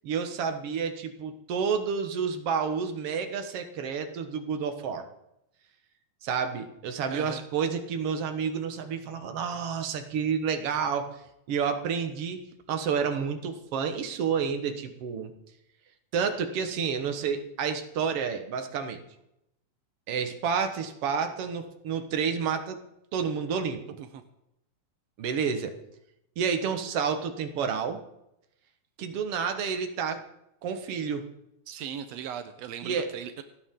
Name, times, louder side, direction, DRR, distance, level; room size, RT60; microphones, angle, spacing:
voice 1, 0.0-5.1 6.2-11.2 11.5-12.4 12.7-15.3 16.1-19.0 20.1-22.8 23.1-23.8 25.2-25.7 26.4-28.0 29.0-30.2 30.6-31.3 32.8-33.1, right 6 dB, 55° right, 6 dB, 1.7 m, -30 dB
voice 2, 7.1-7.4 24.0-24.2 31.7-33.4, right 9 dB, 85° right, 9 dB, 1.4 m, -38 dB
29.0 x 9.7 x 3.8 m, 0.83 s
omnidirectional pair, 4.1 m